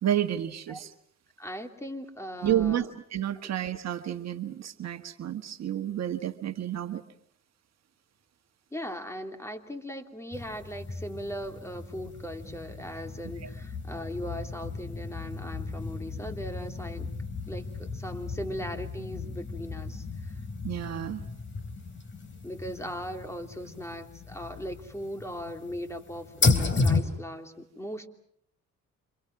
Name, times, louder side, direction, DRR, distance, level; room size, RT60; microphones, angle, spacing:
voice 1, 0.0-0.9 2.4-7.0 13.4-13.5 20.6-21.2, right 11 dB, 60° right, 7 dB, 1.5 m, -30 dB
voice 2, 1.4-2.9 3.4-3.5 8.7-17.1 17.5-20.4 22.4-28.1, equal, 10° left, 5 dB, 3.0 m, -39 dB
sound 1, 10.3-27.0, left 3 dB, 40° left, 3.7 m, -33 dB
28.5 x 27.5 x 6.0 m, 0.68 s
cardioid pair, 90°, 30 cm